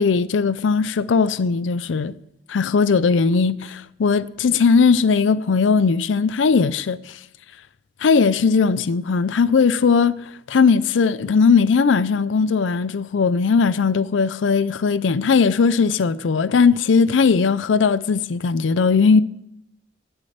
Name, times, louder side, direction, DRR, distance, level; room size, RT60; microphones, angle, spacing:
voice 1, 0.0-2.1 2.5-7.2 8.0-10.2 10.5-19.2, left 5 dB, 90° left, 0.5 m, -18 dB
12.0 x 6.5 x 8.7 m
head